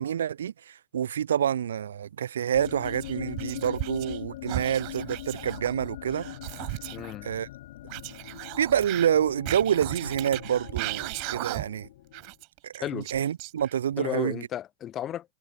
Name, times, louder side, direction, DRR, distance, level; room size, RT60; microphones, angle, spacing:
voice 1, 0.0-6.3 7.2-7.5 8.6-11.9 12.6-14.4, right 9 dB, 85° right, 1.4 m, -27 dB
sound 1, 2.5-12.3, left 15 dB, 65° left, 3.6 m, -42 dB
Whispering, 2.6-4.2 4.5-7.1 7.9-11.9 12.1-13.9, right 33 dB, 50° right, 0.9 m, -37 dB
voice 2, 6.9-7.3 12.8-13.1 14.0-15.3, left 11 dB, 30° left, 2.0 m, -33 dB
hypercardioid pair, 120°, 0 cm